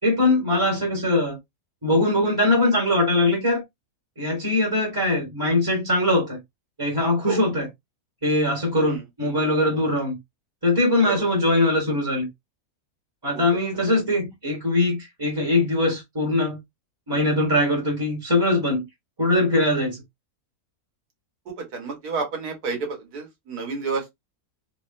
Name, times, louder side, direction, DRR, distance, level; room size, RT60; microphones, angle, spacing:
voice 1, 0.0-1.4 1.8-3.6 4.2-6.4 6.8-7.7 8.2-10.2 10.6-12.3 13.2-16.6 17.1-18.9 19.2-20.0, left 1 dB, 15° right, 1.7 m, -21 dB
voice 2, 21.5-24.1, right 4 dB, 80° right, 1.9 m, -30 dB
4.0 x 3.2 x 2.5 m
omnidirectional pair, 1.6 m